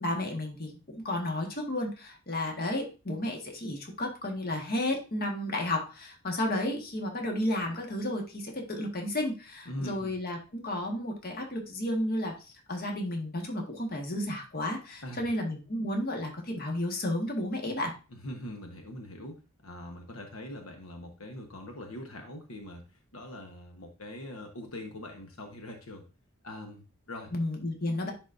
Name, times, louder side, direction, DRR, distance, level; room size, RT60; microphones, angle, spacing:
voice 1, 0.0-17.9 27.3-28.1, left 1 dB, 45° left, 1 dB, 1.5 m, -32 dB
voice 2, 9.7-10.1 15.0-15.3 18.1-22.8 23.1-26.0 26.4-27.3, left 1 dB, 80° left, 3 dB, 1.2 m, -42 dB
10.5 x 4.1 x 2.6 m, 0.32 s
head